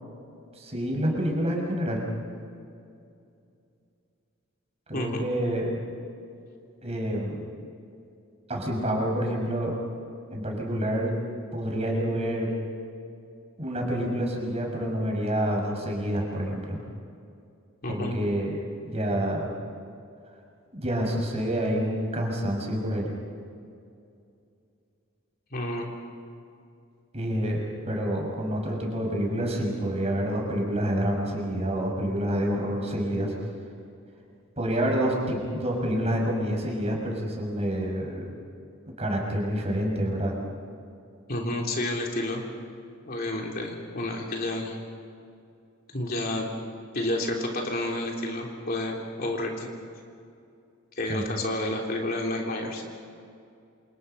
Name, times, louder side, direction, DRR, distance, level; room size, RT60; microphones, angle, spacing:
voice 1, 0.6-2.1 4.9-5.8 6.8-7.4 8.5-9.7 10.3-11.1 11.5-12.5 13.6-16.8 17.9-18.6 18.8-19.5 20.7-23.1 27.1-33.3 34.6-38.2 39.0-40.3 51.1-51.3, equal, 30° right, 0 dB, 6.2 m, -28 dB
voice 2, 4.9-5.2 17.8-18.1 25.5-25.9 41.3-42.4 43.1-44.8 45.9-46.5 46.9-49.7 51.0-52.8, left 1 dB, 45° left, 0 dB, 3.5 m, -30 dB
28.5 x 28.0 x 5.8 m, 2.5 s
head